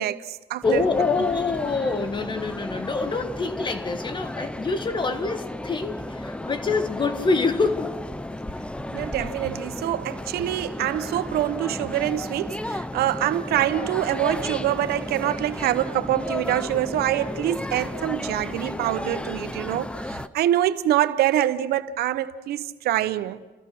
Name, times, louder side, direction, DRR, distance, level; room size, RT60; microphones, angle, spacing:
voice 1, 0.0-0.8 8.9-23.4, right 12 dB, 85° right, 0.9 m, -25 dB
voice 2, 0.6-7.9, left 4 dB, 30° left, 1.8 m, -25 dB
sound 1, 0.6-20.3, left 1 dB, 5° left, 0.7 m, -33 dB
30.0 x 15.0 x 6.1 m
cardioid pair, 105°, 16 cm